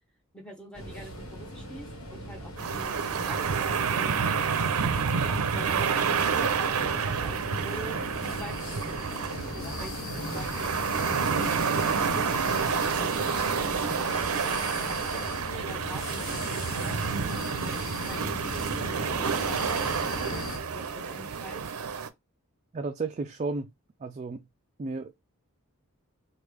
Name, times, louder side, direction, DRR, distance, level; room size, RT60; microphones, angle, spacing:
voice 1, 0.3-4.2 5.1-8.0 8.2-11.5 14.8-17.0 18.0-19.9 20.7-21.6, right 1 dB, 5° left, 0.9 m, -45 dB
sound 1, 0.7-20.6, left 1 dB, 70° left, 1.2 m, -38 dB
sound 2, 2.6-22.1, right 6 dB, 85° right, 0.5 m, -29 dB
sound 3, 9.3-20.9 21.3-21.4, left 4 dB, 25° left, 0.5 m, -45 dB
voice 2, 22.7-23.7 24.0-24.4 24.8-25.1, right 3 dB, 30° right, 0.3 m, -33 dB
3.2 x 2.3 x 3.3 m
head